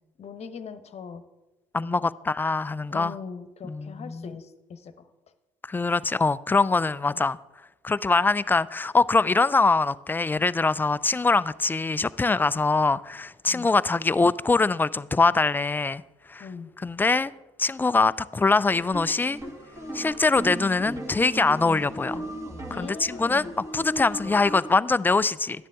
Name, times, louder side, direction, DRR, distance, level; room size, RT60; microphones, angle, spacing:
voice 1, 0.2-1.2 1.8-2.1 2.9-5.1 7.1-7.2 13.5-13.7 16.4-16.7 22.7-23.5, left 6 dB, 40° left, 1.0 m, -40 dB
voice 2, 1.7-3.1 3.6-4.3 5.6-7.4 7.8-16.0 16.3-16.5 16.8-17.3 17.6-19.4 19.9-22.2 22.7-25.7, left 3 dB, 10° left, 0.3 m, -23 dB
sound 1, 18.7-24.7, right 1 dB, 20° right, 2.2 m, -37 dB
12.5 x 10.0 x 3.6 m
hypercardioid pair, 60°, 16 cm